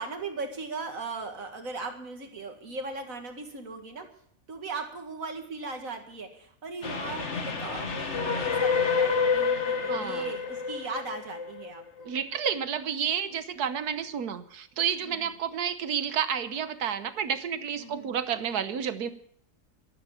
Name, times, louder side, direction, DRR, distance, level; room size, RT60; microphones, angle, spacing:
voice 1, 0.0-4.1 4.5-12.1 15.1-15.2 17.8-18.2, right 3 dB, 60° right, 5 dB, 2.4 m, -38 dB
Train, 6.8-12.1, left 5 dB, 45° left, 1.8 m, -28 dB
voice 2, 9.9-10.3 12.0-19.1, right 8 dB, 75° right, 12 dB, 1.5 m, -30 dB
12.5 x 12.0 x 7.1 m, 0.65 s
omnidirectional pair, 1.7 m